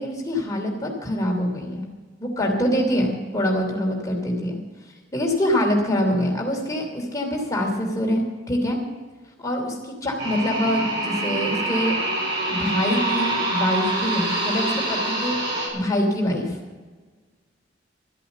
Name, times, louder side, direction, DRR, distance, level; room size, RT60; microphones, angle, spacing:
voice 1, 0.0-1.9 2.2-4.6 5.1-8.8 9.4-12.0 12.5-15.4 15.7-16.6, equal, 20° left, 0 dB, 3.0 m, -24 dB
sound 1, 10.2-15.7, right 2 dB, 65° right, 4.8 m, -25 dB
13.5 x 8.3 x 8.0 m, 1.4 s
head